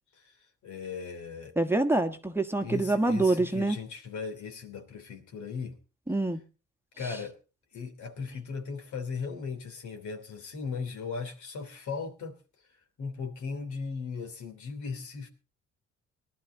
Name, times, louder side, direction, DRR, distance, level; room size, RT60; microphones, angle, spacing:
voice 1, 0.6-1.5 1.9-2.0 2.6-5.8 7.0-7.4 7.7-12.4 13.0-15.3, left 5 dB, 70° left, 5 dB, 3.1 m, -37 dB
voice 2, 1.6-3.8 6.1-6.4, right 2 dB, 10° right, 5 dB, 1.3 m, -26 dB
19.5 x 11.5 x 3.9 m, 0.34 s
cardioid pair, 90°, 30 cm